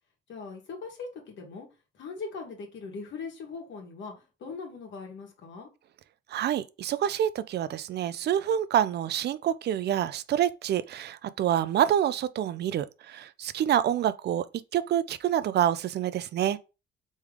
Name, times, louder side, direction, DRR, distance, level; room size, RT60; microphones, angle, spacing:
voice 1, 0.3-1.7 1.9-5.7, left 4 dB, 70° left, 1.4 m, -40 dB
voice 2, 6.3-14.5 14.7-16.6, right 10 dB, 55° right, 0.4 m, -27 dB
3.6 x 3.1 x 3.2 m
cardioid pair, 90°, 20 cm